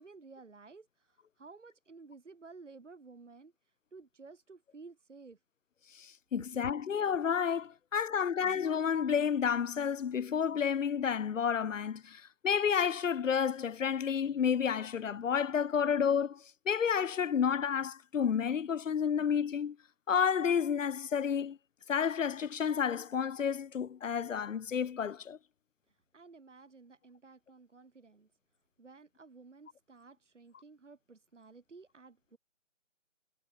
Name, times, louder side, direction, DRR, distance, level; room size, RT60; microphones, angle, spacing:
voice 1, 0.0-5.4 25.9-28.3 28.8-32.4, right 4 dB, 60° right, 2.6 m, -54 dB
voice 2, 6.0-19.8 20.1-21.6 21.9-25.4, left 7 dB, 65° left, 0.5 m, -30 dB
figure-of-eight pair, 155°, 41 cm